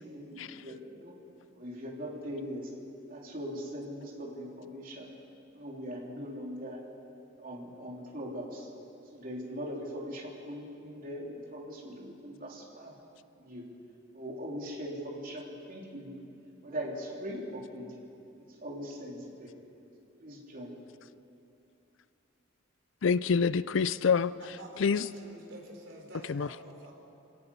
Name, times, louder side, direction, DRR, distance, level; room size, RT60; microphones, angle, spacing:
voice 1, 0.1-1.1 1.5-2.7 3.1-5.1 5.5-6.8 7.4-8.7 9.1-12.9 13.4-13.7 14.1-16.2 16.6-18.0 18.5-19.5 20.2-20.7, equal, 45° right, -2 dB, 3.5 m, -40 dB
voice 2, 23.0-24.3 24.8-25.1 26.3-26.5, left 5 dB, 70° left, 17 dB, 0.5 m, -26 dB
voice 3, 24.4-26.9, right 1 dB, 70° right, 0 dB, 4.3 m, -48 dB
27.0 x 17.0 x 5.5 m, 2.6 s
head